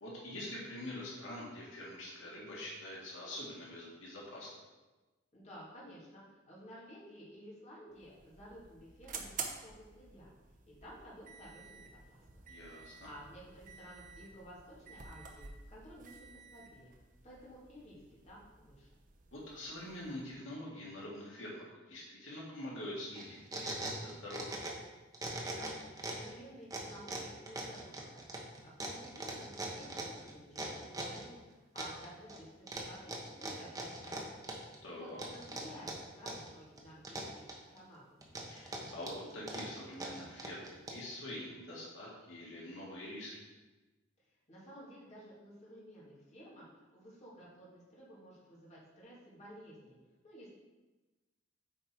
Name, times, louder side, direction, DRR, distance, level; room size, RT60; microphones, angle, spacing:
voice 1, 0.0-4.5 12.5-13.1 19.3-24.6 34.8-35.2 38.5-43.4, left 1 dB, 75° left, -5 dB, 1.9 m, -45 dB
voice 2, 5.3-9.3 9.6-10.3 10.8-12.2 12.7-16.9 17.2-18.9 25.4-32.5 32.7-38.2 44.2-49.9 50.2-50.5, equal, 35° left, -7 dB, 2.3 m, -54 dB
sound 1, 7.9-20.3, right 5 dB, 40° right, 0.8 m, -50 dB
sound 2, 23.1-24.9 25.1-26.3 26.7-31.2 31.8-32.4 32.7-34.8 35.2-36.5 36.8-37.8 38.2-41.1, right 2 dB, 20° right, 1.0 m, -41 dB
7.9 x 4.4 x 4.6 m, 1.2 s
head